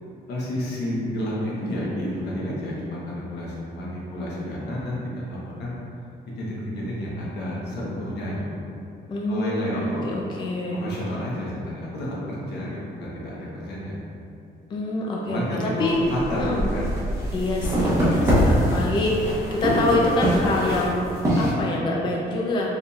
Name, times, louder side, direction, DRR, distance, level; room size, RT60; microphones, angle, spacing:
voice 1, 0.3-5.8 6.4-8.6 9.3-10.1 10.7-14.0 15.2-16.9 18.0-18.4, left 1 dB, 80° left, -6 dB, 1.0 m, -30 dB
voice 2, 9.1-10.9 14.7-16.0 16.4-16.6 17.3-22.7, left 2 dB, 30° left, -2 dB, 0.4 m, -26 dB
sound 1, 15.8-21.5, equal, 15° right, 0.9 m, -23 dB
4.2 x 3.6 x 2.3 m, 2.6 s
cardioid pair, 160°, 17 cm